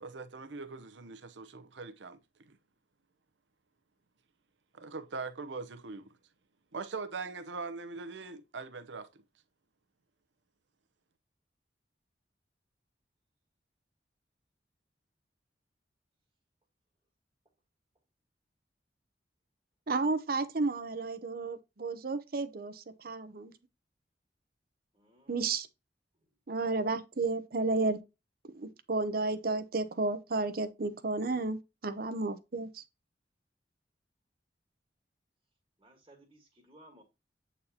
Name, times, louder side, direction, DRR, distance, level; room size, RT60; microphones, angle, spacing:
voice 1, 0.0-2.2 2.5-2.6 4.7-6.1 6.7-9.1, right 4 dB, 85° right, 0.8 m, -41 dB
voice 2, 19.9-23.5 25.3-25.7 26.5-28.0 28.5-32.8, right 3 dB, 55° right, 0.7 m, -32 dB
voice 3, 24.9-25.4 35.8-37.0, right 1 dB, 25° right, 1.5 m, -59 dB
8.3 x 4.1 x 2.8 m
head